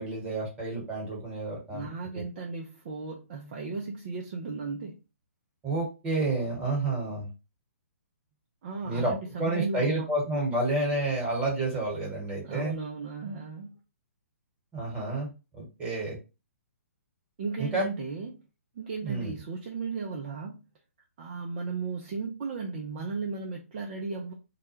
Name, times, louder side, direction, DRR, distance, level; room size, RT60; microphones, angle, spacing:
voice 1, 0.0-1.9 2.1-2.2 5.6-7.3 8.8-12.7 14.7-16.2 17.6-17.9 19.0-19.3, right 2 dB, 15° right, -2 dB, 1.2 m, -30 dB
voice 2, 1.7-5.0 8.6-10.1 12.4-13.7 17.4-18.4 18.7-20.6 21.2-24.3, right 4 dB, 35° right, 0 dB, 0.5 m, -35 dB
2.3 x 2.1 x 2.9 m, 0.29 s
figure-of-eight pair, 125°, 8 cm